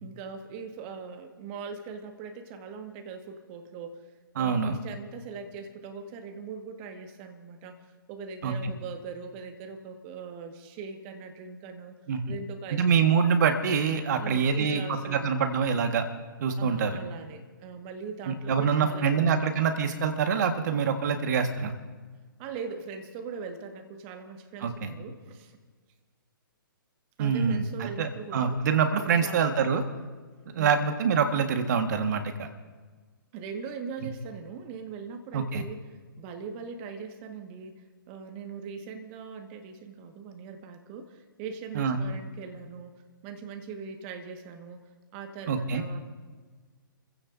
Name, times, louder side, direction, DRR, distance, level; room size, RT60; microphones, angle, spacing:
voice 1, 0.0-4.0 4.4-7.8 8.1-12.0 12.3-12.8 13.1-13.2 14.2-15.3 16.6-19.5 22.4-25.6 27.2-28.6 29.0-29.4 30.6-30.8 33.3-35.8 36.2-42.9 43.2-44.8 45.1-46.0, right 5 dB, 30° right, 5 dB, 1.8 m, -41 dB
voice 2, 4.4-4.8 8.4-8.7 12.1-12.2 12.7-16.0 16.4-17.0 18.3-21.7 24.6-24.9 27.2-29.8 30.5-32.5 35.3-35.7 41.7-42.0 45.5-45.8, right 6 dB, 50° right, 6 dB, 1.8 m, -25 dB
29.0 x 16.0 x 2.8 m, 1.4 s
figure-of-eight pair, 130°, 12 cm